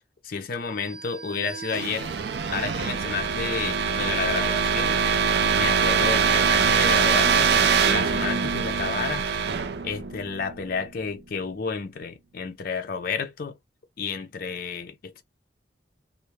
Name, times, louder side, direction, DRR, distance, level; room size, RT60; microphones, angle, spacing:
voice 1, 0.2-2.1 2.5-5.0 5.5-9.3 9.8-13.6 14.0-15.2, left 5 dB, 55° left, 0.5 m, -31 dB
sound 1, 1.0-10.8, right 6 dB, 65° right, 0.4 m, -23 dB
2.2 x 2.0 x 3.0 m
head